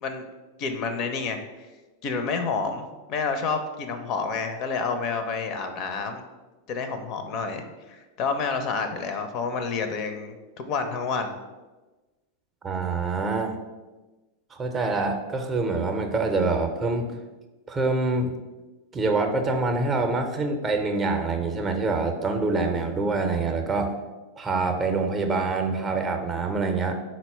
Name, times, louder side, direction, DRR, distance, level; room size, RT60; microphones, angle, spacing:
voice 1, 0.6-1.4 2.0-6.2 6.7-11.4, left 4 dB, 50° left, 7 dB, 0.4 m, -29 dB
voice 2, 12.6-13.6 14.5-17.1 17.7-18.3 18.9-23.9 24.4-26.9, right 3 dB, 25° right, 5 dB, 0.5 m, -25 dB
4.0 x 2.1 x 4.3 m, 1.2 s
hypercardioid pair, 100°, 0 cm